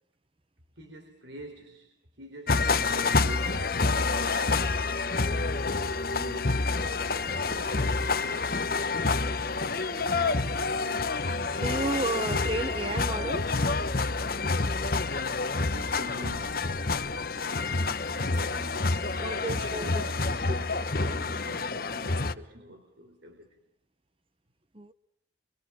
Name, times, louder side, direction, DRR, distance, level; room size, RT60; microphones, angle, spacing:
voice 1, 0.8-4.2 5.2-8.5 15.7-18.9 19.3-23.6, equal, 70° right, 4 dB, 4.1 m, -47 dB
sound 1, 2.5-22.3, left 3 dB, 50° left, 1.1 m, -28 dB
voice 2, 11.6-13.6 19.2-20.3 24.7-24.9, right 2 dB, 30° right, 13 dB, 1.1 m, -33 dB
26.0 x 23.5 x 6.5 m, 0.74 s
head